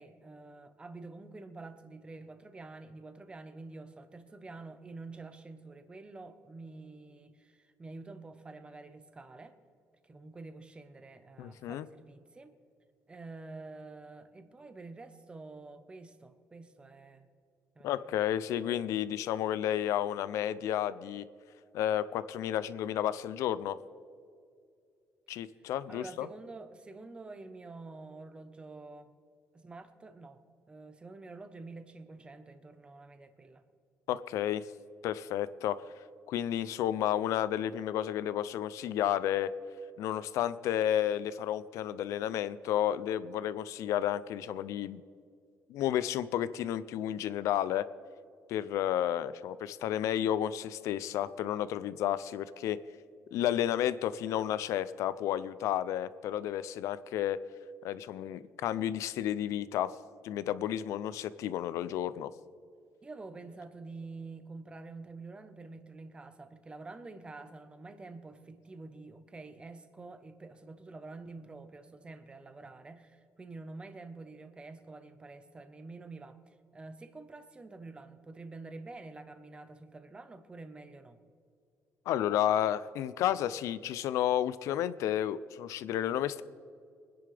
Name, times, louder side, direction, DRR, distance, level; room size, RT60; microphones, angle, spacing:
voice 1, 0.0-9.6 10.0-12.5 13.1-17.3 17.7-18.2 25.3-29.1 29.5-33.6 63.0-81.2, right 3 dB, 20° right, 9 dB, 1.1 m, -48 dB
voice 2, 11.4-11.9 17.8-21.3 21.7-23.8 25.3-26.3 34.1-34.6 35.0-35.8 36.3-39.5 40.0-45.0 45.7-47.9 48.5-52.8 53.3-57.4 57.8-59.9 60.2-62.3 82.1-86.4, left 11 dB, 90° left, 16 dB, 0.5 m, -31 dB
24.0 x 10.5 x 3.5 m, 2.4 s
cardioid pair, 130°, 5 cm